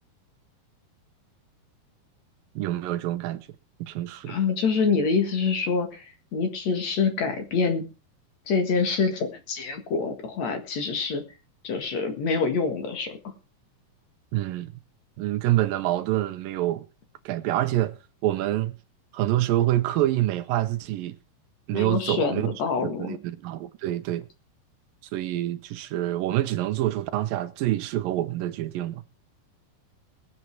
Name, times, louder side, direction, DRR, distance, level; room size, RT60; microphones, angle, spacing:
voice 1, 2.6-3.5 3.8-4.4 14.3-14.7 15.2-16.8 17.3-17.9 18.2-18.8 19.1-21.2 21.7-22.5 22.8-24.3 25.1-29.0, right 14 dB, 75° right, 2.2 m, -26 dB
voice 2, 4.2-7.9 8.5-11.2 11.6-13.3 21.7-23.2, left 5 dB, 50° left, 2.5 m, -26 dB
20.5 x 7.8 x 4.6 m
omnidirectional pair, 4.5 m